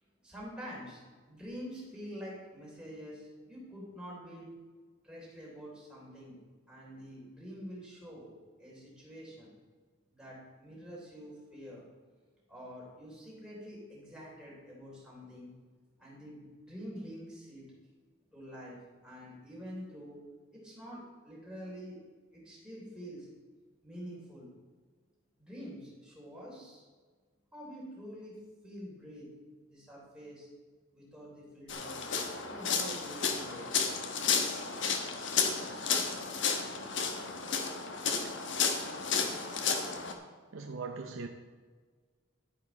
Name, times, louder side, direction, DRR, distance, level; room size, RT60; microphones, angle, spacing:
voice 1, 0.2-4.5 5.0-6.4 6.7-8.3 8.6-9.5 10.1-11.9 12.5-15.5 16.0-17.6 18.3-18.8 19.0-20.2 20.5-22.0 22.3-23.3 23.8-24.5 25.4-26.8 27.5-28.3 28.6-29.3 29.7-30.5 30.9-32.1 32.5-33.7, equal, 5° right, -6 dB, 3.3 m, -46 dB
sound 1, 31.7-40.1, left 5 dB, 65° left, 1.1 m, -32 dB
voice 2, 40.5-41.3, right 4 dB, 80° right, 4 dB, 0.6 m, -39 dB
11.0 x 9.5 x 4.1 m, 1.5 s
head